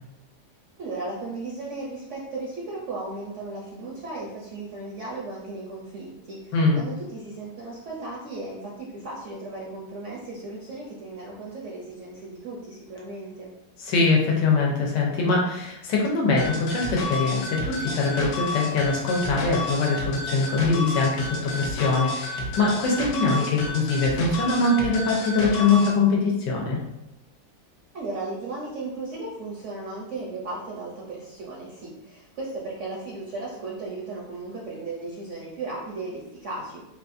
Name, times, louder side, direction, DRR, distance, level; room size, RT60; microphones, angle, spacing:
voice 1, 0.8-13.6 27.9-36.8, right 2 dB, 70° right, -4 dB, 0.7 m, -36 dB
voice 2, 13.8-26.8, left 3 dB, 85° left, -1 dB, 1.4 m, -23 dB
sound 1, 16.4-26.0, left 2 dB, 70° left, 1.1 m, -31 dB
4.0 x 2.3 x 2.6 m, 0.88 s
omnidirectional pair, 1.9 m